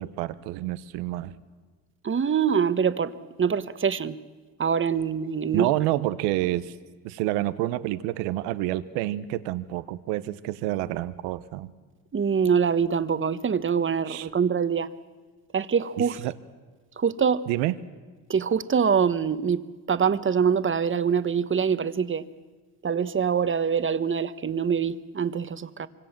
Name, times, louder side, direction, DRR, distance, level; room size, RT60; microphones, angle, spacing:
voice 1, 0.0-1.4 5.5-6.7 7.0-11.7 14.1-14.3 16.0-16.3 17.5-17.7, right 15 dB, 90° right, 1.1 m, -28 dB
voice 2, 2.0-4.2 4.6-5.7 12.1-14.9 15.5-16.2 17.0-17.4 18.3-22.2 22.8-25.9, right 7 dB, 30° right, 1.2 m, -24 dB
25.5 x 25.5 x 7.4 m
supercardioid pair, 85°, 41 cm